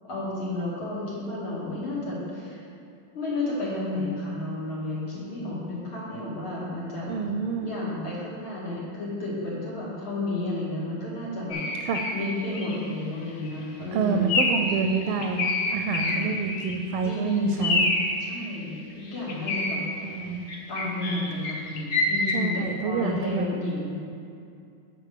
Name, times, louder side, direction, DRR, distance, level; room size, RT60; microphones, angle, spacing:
voice 1, 0.0-2.6 3.1-7.1 7.6-11.6 12.1-14.4 15.7-16.3 17.0-17.8 18.2-20.1 20.7-23.9, left 2 dB, 75° left, -7 dB, 3.0 m, -32 dB
voice 2, 7.1-7.7 11.8-12.0 13.9-17.9 20.0-20.5 22.3-23.5, right 5 dB, 85° right, 5 dB, 1.4 m, -28 dB
sound 1, 11.5-12.2 12.5-12.8 13.3-13.5 14.3-14.7 15.0-16.8 17.1-17.2 17.6-18.1 19.1-19.8 20.5-22.4, left 3 dB, 50° left, 1.0 m, -26 dB
9.2 x 4.0 x 6.7 m, 2.5 s
omnidirectional pair, 2.3 m